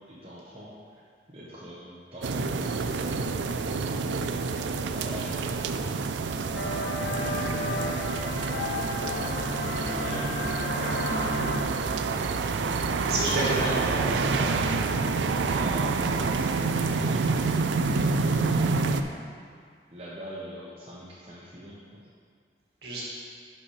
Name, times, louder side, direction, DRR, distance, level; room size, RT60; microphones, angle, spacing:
voice 1, 0.1-1.0 1.3-4.5 4.9-9.1 9.5-12.2 15.5-18.8 19.9-22.0, equal, 30° right, -8 dB, 1.0 m, -44 dB
sound 1, 2.2-19.0, right 4 dB, 85° right, 0.4 m, -28 dB
sound 2, 6.5-11.6, left 1 dB, 75° left, 0.6 m, -32 dB
voice 2, 13.0-14.6 22.8-23.1, right 1 dB, 65° right, -6 dB, 2.1 m, -30 dB
11.0 x 5.1 x 3.2 m, 2.1 s
head